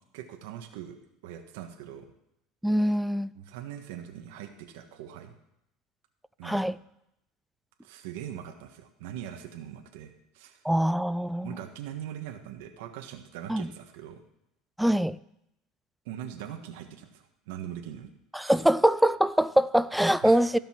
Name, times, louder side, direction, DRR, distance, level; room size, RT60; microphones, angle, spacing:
voice 1, 0.1-1.0 1.2-2.1 3.3-5.3 6.4-6.7 7.8-10.6 11.4-14.2 16.0-18.1 18.4-18.5 20.2-20.4, right 10 dB, 85° right, 1.5 m, -41 dB
voice 2, 2.6-3.3 6.4-6.8 10.6-11.6 13.5-13.7 14.8-15.2 18.3-20.6, right 1 dB, ahead, 0.3 m, -23 dB
15.0 x 5.4 x 6.0 m
supercardioid pair, 135°, 0 cm